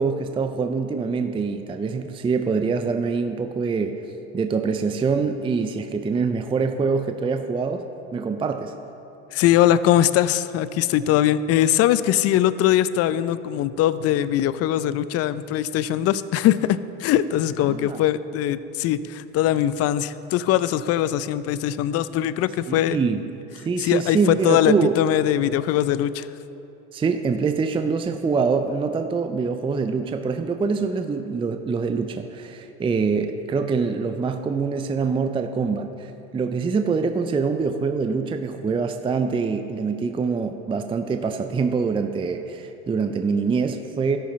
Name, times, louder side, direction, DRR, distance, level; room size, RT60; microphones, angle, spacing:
voice 1, 0.0-4.0 4.3-7.9 8.1-8.7 17.7-18.0 22.7-23.2 23.7-25.0 26.9-44.2, right 5 dB, 15° right, 7 dB, 0.5 m, -24 dB
voice 2, 9.3-23.0 23.8-26.3, left 12 dB, 45° left, 15 dB, 0.5 m, -21 dB
13.0 x 11.5 x 3.2 m, 3.0 s
hypercardioid pair, 85°, 34 cm